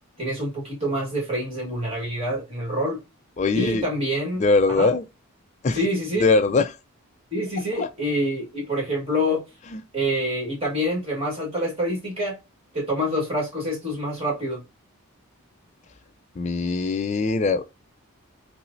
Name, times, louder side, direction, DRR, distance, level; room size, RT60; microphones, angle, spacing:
voice 1, 0.2-3.0 3.5-4.4 4.8-4.9 5.7-6.3 7.3-9.4 9.9-12.4 12.7-14.6, equal, 25° right, 1.4 m, -26 dB
voice 2, 3.4-3.9 4.4-5.0 5.6-5.8 6.2-6.8 7.8-7.9 9.7-9.8 16.4-17.6, left 3 dB, 30° left, 0.3 m, -21 dB
5.6 x 2.0 x 2.5 m
head